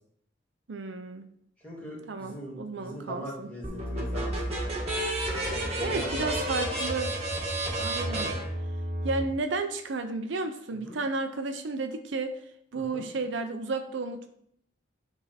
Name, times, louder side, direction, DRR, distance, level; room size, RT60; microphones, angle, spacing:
voice 1, 0.7-1.3 2.1-3.5 5.8-7.1 7.8-8.3 9.0-12.4 12.7-14.3, right 3 dB, 70° right, 7 dB, 0.6 m, -32 dB
voice 2, 1.6-5.1 5.5-6.5 8.1-8.4 10.8-11.0 12.9-13.0, equal, 10° left, -5 dB, 2.1 m, -40 dB
sound 1, 3.6-9.2, right 1 dB, 30° right, 1.4 m, -31 dB
9.9 x 3.5 x 4.2 m, 0.72 s
head